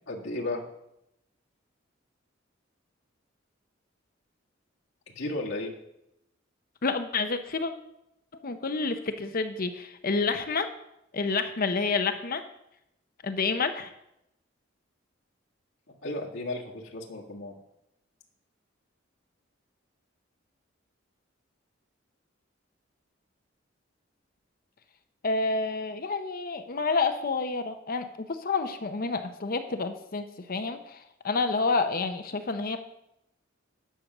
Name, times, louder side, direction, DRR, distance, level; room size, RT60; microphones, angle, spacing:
voice 1, 0.1-0.6 5.2-5.7 16.0-17.6, left 2 dB, 80° left, -4 dB, 1.8 m, -34 dB
voice 2, 6.8-7.7 8.4-10.7 11.1-12.4 13.2-13.9 25.2-32.8, left 4 dB, 50° left, 8 dB, 0.7 m, -29 dB
10.0 x 6.8 x 6.0 m, 0.82 s
head